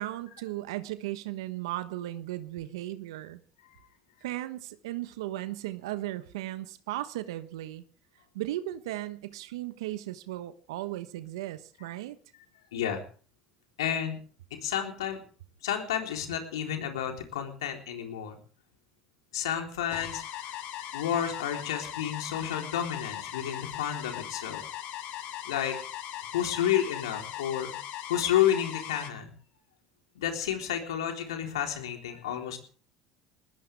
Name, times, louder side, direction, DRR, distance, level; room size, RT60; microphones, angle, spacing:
voice 1, 0.0-3.4 4.2-7.8 8.3-12.2, right 15 dB, 80° right, 11 dB, 1.1 m, -36 dB
voice 2, 12.7-13.0 13.8-14.2 14.5-15.2 15.6-18.4 19.3-24.7 25.1-25.8 26.3-27.7 28.1-29.3 30.2-32.6, left 10 dB, 80° left, 3 dB, 3.7 m, -31 dB
sound 1, 19.9-29.1, left 12 dB, 65° left, 2.9 m, -39 dB
21.5 x 19.5 x 3.5 m, 0.41 s
hypercardioid pair, 70°, 3 cm